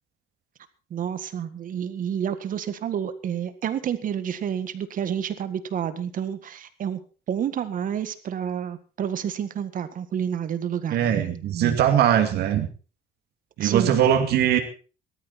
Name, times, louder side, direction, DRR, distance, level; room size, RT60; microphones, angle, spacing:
voice 1, 0.9-7.0 7.3-11.8 13.6-14.0, right 8 dB, 55° right, 12 dB, 1.8 m, -29 dB
voice 2, 10.9-12.7 13.6-14.6, right 10 dB, 70° right, 4 dB, 2.6 m, -21 dB
18.5 x 13.5 x 4.3 m, 0.36 s
cardioid pair, 110°, 17 cm